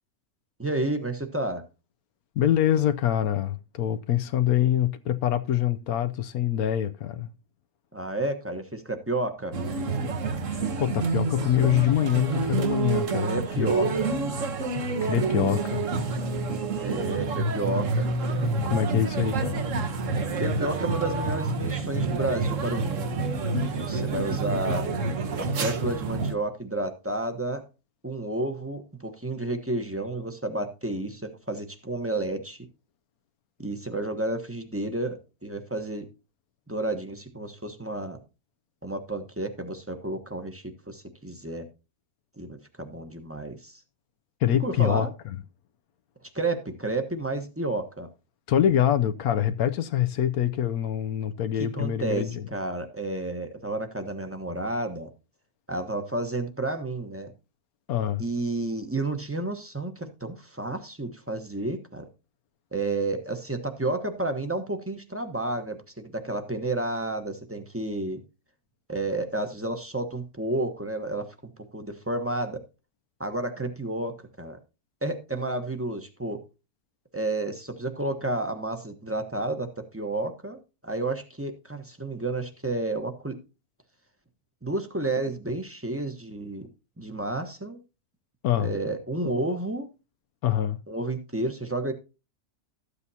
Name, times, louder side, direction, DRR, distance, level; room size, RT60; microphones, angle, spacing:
voice 1, 0.6-1.6 7.9-9.5 13.2-14.1 16.8-18.1 20.4-24.9 25.4-27.6 28.0-32.6 33.6-36.0 36.7-38.2 38.8-41.7 42.4-43.8 44.6-45.1 46.3-48.1 51.7-55.1 55.7-57.3 58.2-62.1 62.7-68.2 68.9-71.3 71.7-72.6 73.2-74.6 75.0-76.4 77.1-80.6 80.8-83.4 84.6-86.7 87.0-87.8 88.6-89.9 90.9-91.9, right 2 dB, 10° right, 0.9 m, -31 dB
voice 2, 2.4-7.3 10.5-13.3 13.6-13.9 15.0-15.9 18.6-19.6 44.4-45.4 48.5-52.5 57.9-58.2 88.4-88.7 90.4-90.8, left 11 dB, 80° left, 1.1 m, -25 dB
sound 1, 9.5-26.3, right 4 dB, 60° right, 1.4 m, -28 dB
13.5 x 8.3 x 2.8 m
omnidirectional pair, 1.5 m